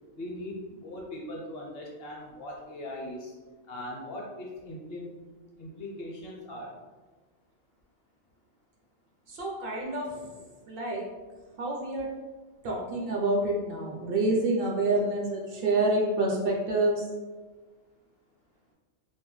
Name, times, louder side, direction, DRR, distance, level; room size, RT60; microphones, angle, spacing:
voice 1, 0.2-3.4 3.7-5.3 5.6-6.7, left 1 dB, 60° left, -3 dB, 0.8 m, -40 dB
voice 2, 9.3-11.0 11.6-12.1 12.6-17.0, right 2 dB, 60° right, -2 dB, 0.7 m, -28 dB
2.7 x 2.1 x 3.0 m, 1.3 s
omnidirectional pair, 1.2 m